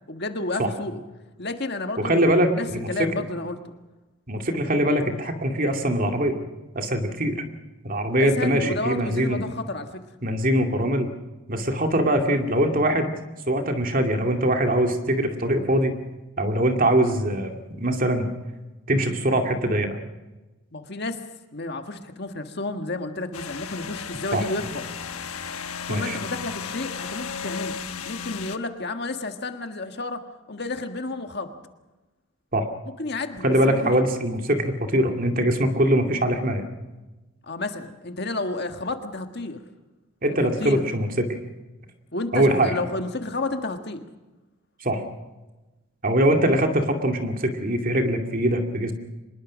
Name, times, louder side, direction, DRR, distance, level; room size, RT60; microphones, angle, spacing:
voice 1, 0.1-1.0 1.4-3.7 8.2-10.0 20.7-21.2 21.5-24.8 25.9-27.8 28.0-30.2 30.5-31.5 33.0-34.1 37.4-39.6 40.3-40.9 42.1-44.0, left 2 dB, 50° left, 6 dB, 1.7 m, -31 dB
voice 2, 2.0-2.9 4.3-6.4 6.7-7.4 7.8-9.4 10.2-11.1 11.5-13.1 13.5-16.0 16.4-17.5 17.8-18.3 18.9-19.9 24.3-24.4 25.9-26.2 32.5-32.6 33.4-36.6 40.2-41.3 42.3-42.8 44.8-45.0 46.0-48.9, right 1 dB, 40° right, 4 dB, 2.4 m, -22 dB
sound 1, 23.3-28.6, left 6 dB, 85° left, 1.2 m, -34 dB
25.0 x 21.0 x 6.3 m, 1.1 s
head